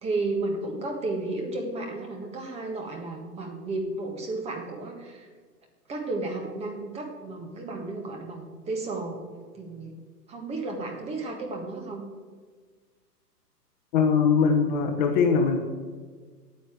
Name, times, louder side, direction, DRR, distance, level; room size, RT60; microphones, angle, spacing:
voice 1, 0.0-5.3 5.9-9.2 9.5-9.9 10.3-12.1, right 2 dB, 15° right, 2 dB, 1.5 m, -33 dB
voice 2, 13.9-15.7, left 5 dB, 30° left, 4 dB, 1.1 m, -21 dB
9.6 x 8.2 x 9.4 m, 1.5 s
hypercardioid pair, 145°, 49 cm